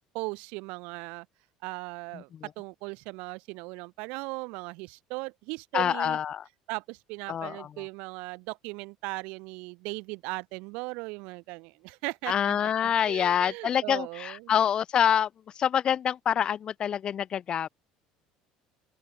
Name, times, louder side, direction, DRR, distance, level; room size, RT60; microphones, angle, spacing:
voice 1, 0.1-1.3 1.6-6.2 6.7-14.5, right 27 dB, 75° right, 0.7 m, -38 dB
voice 2, 2.1-2.5 5.7-6.4 7.3-7.7 12.3-15.3 15.6-17.7, left 9 dB, 40° left, 0.4 m, -26 dB
open air
supercardioid pair, 95°, 2 cm